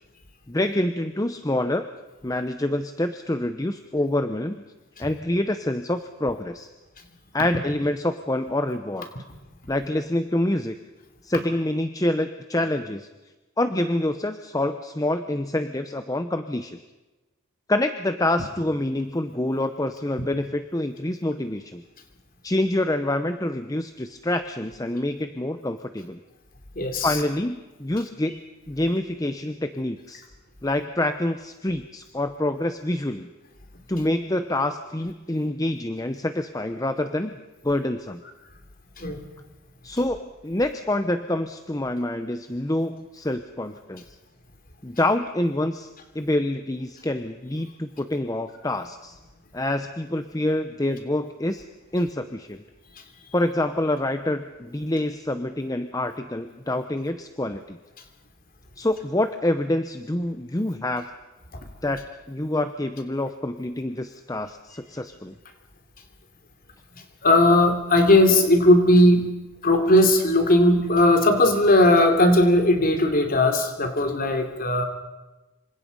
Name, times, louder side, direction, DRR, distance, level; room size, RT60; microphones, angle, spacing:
voice 1, 0.5-1.9 2.2-4.6 5.0-6.7 7.3-9.1 9.7-10.8 11.2-13.1 13.6-16.8 17.7-21.8 22.4-26.2 27.0-28.4 28.7-30.2 30.6-33.3 33.9-37.4 37.6-38.2 39.8-44.0 44.8-45.9 46.1-49.2 49.5-51.6 51.9-52.6 53.3-57.8 58.8-61.1 61.8-62.0 62.3-65.3, left 1 dB, 15° left, 9 dB, 0.8 m, -26 dB
voice 2, 26.8-27.2 39.0-39.2 67.2-69.3 69.6-74.8, left 1 dB, 40° left, 5 dB, 3.1 m, -18 dB
27.0 x 25.0 x 5.4 m, 1.1 s
head